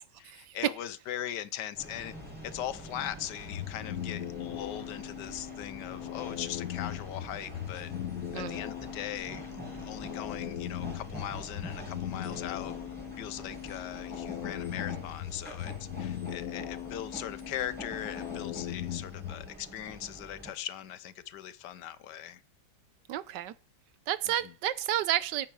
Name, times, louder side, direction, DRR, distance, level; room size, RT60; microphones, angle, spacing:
voice 1, 0.2-2.1 2.4-7.9 8.3-12.7 13.2-22.4 24.4-24.5, left 11 dB, 80° left, 1.4 m, -40 dB
sound 1, 1.7-20.5, equal, 5° right, 5.0 m, -45 dB
sound 2, 3.4-19.5, left 11 dB, 65° left, 1.2 m, -39 dB
voice 2, 23.1-23.5 24.1-25.5, right 12 dB, 85° right, 1.4 m, -31 dB
10.0 x 8.9 x 4.7 m
omnidirectional pair, 1.8 m